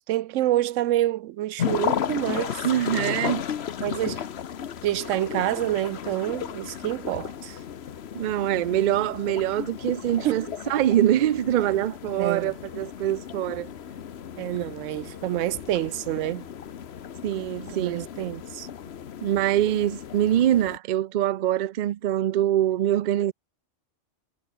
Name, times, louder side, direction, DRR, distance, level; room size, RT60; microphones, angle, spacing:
voice 1, 0.0-2.7 3.8-4.3 4.8-7.6 10.2-10.5 12.2-12.5 14.4-16.5 17.7-18.7, right 14 dB, 80° right, 0.9 m, -27 dB
sound 1, 1.6-20.8, left 8 dB, 60° left, 1.1 m, -34 dB
voice 2, 2.6-3.4 8.1-10.4 10.7-13.7 17.2-18.1 19.2-23.3, right 12 dB, 65° right, 0.4 m, -24 dB
omnidirectional pair, 1.3 m